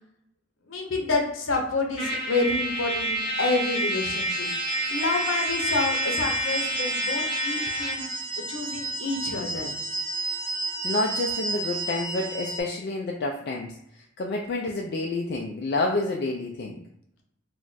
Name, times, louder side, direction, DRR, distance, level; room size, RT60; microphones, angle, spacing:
voice 1, 0.7-4.5 4.9-8.1 8.5-9.7, left 3 dB, 70° left, 2 dB, 0.7 m, -28 dB
Trumpet, 2.0-8.1, equal, 25° left, 0.9 m, -28 dB
sound 1, 3.6-12.6, right 3 dB, 85° right, 0.7 m, -33 dB
voice 2, 10.8-16.8, left 2 dB, 50° left, 0 dB, 0.3 m, -29 dB
2.4 x 2.2 x 3.9 m, 0.80 s
head